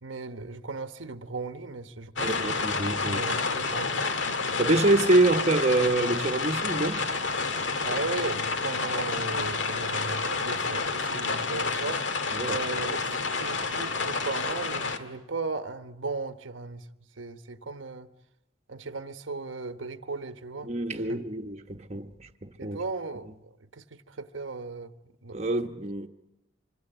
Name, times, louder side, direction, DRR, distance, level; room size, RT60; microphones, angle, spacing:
voice 1, 0.0-2.8 3.0-4.0 7.8-16.9 17.2-18.1 18.7-21.2 22.6-25.4, right 3 dB, 75° right, 1.1 m, -37 dB
sound 1, 2.2-15.0, left 4 dB, 65° left, 1.8 m, -29 dB
voice 2, 2.2-3.2 4.6-7.1 12.3-12.6 20.7-22.3 22.6-22.8 25.3-26.1, right 2 dB, 35° right, 1.1 m, -25 dB
25.5 x 24.5 x 8.0 m
head